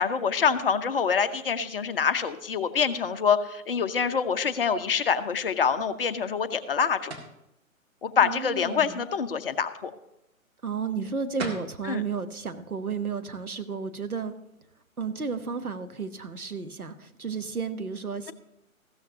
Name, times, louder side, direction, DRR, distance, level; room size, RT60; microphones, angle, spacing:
voice 1, 0.0-7.1 8.0-9.9 11.9-12.0, left 6 dB, 40° left, 10 dB, 0.8 m, -26 dB
sound 1, 7.1-7.4 11.0-11.1 11.4-11.7, right 3 dB, 45° right, 2.1 m, -35 dB
voice 2, 8.2-9.1 10.6-14.3 15.0-18.3, right 5 dB, 85° right, 8 dB, 1.2 m, -33 dB
15.0 x 13.0 x 2.8 m, 0.86 s
figure-of-eight pair, 135°, 42 cm